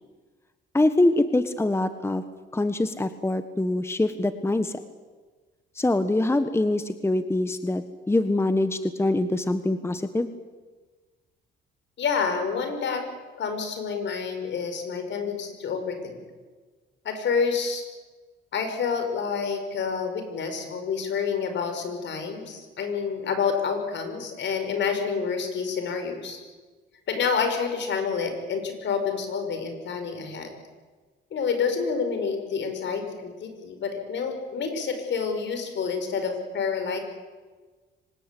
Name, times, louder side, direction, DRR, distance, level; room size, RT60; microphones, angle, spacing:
voice 1, 0.7-2.2 2.5-4.8 5.7-10.3, left 2 dB, 15° left, 10 dB, 1.3 m, -24 dB
voice 2, 12.0-13.0 13.4-16.2 17.0-17.8 18.5-26.4 27.1-30.5 31.3-37.0, left 5 dB, 65° left, 7 dB, 5.4 m, -28 dB
24.5 x 19.5 x 8.5 m, 1.4 s
cardioid pair, 90°, 20 cm